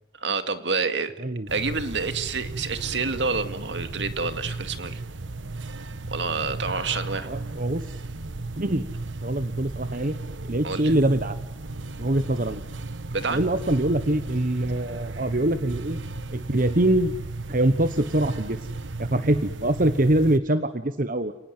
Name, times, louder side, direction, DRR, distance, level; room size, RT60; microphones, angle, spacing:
voice 1, 0.2-1.1 1.5-5.0 6.1-7.3 10.6-10.9 13.1-13.4, right 4 dB, 70° right, 9 dB, 2.2 m, -28 dB
sound 1, 1.5-20.4, right 2 dB, 90° right, 1.2 m, -35 dB
voice 2, 7.2-7.9 8.6-8.9 9.2-10.2 10.4-11.4 12.0-12.6 13.3-16.0 16.3-17.1 17.5-18.7 19.0-21.3, right 1 dB, 45° right, 10 dB, 1.1 m, -24 dB
30.0 x 19.5 x 9.5 m, 0.80 s
head